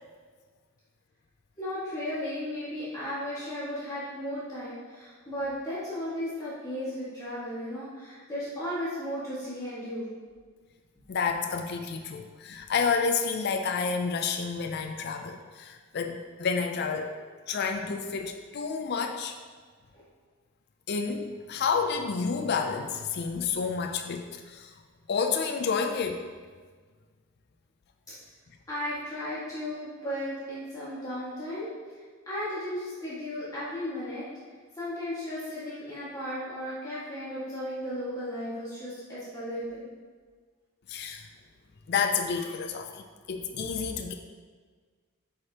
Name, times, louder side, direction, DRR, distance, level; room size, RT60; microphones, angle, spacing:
voice 1, 1.6-10.2 28.7-31.7 32.2-34.3 34.7-39.9, equal, 15° left, -10 dB, 1.7 m, -35 dB
voice 2, 11.1-17.2 17.5-19.4 20.9-24.8 25.1-26.2 40.9-41.3 41.9-44.1, left 5 dB, 50° left, 4 dB, 0.4 m, -30 dB
8.6 x 5.0 x 2.9 m, 1.5 s
head